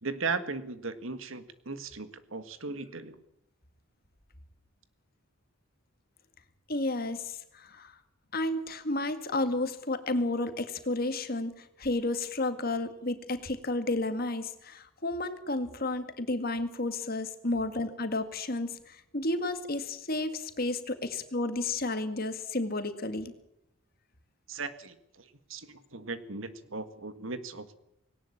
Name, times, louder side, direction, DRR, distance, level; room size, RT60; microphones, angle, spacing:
voice 1, 0.0-3.2 24.5-27.8, right 4 dB, 70° right, 11 dB, 1.7 m, -37 dB
voice 2, 6.7-8.0 8.3-23.3, left 2 dB, 45° left, 9 dB, 2.0 m, -32 dB
19.0 x 18.0 x 8.7 m, 0.80 s
head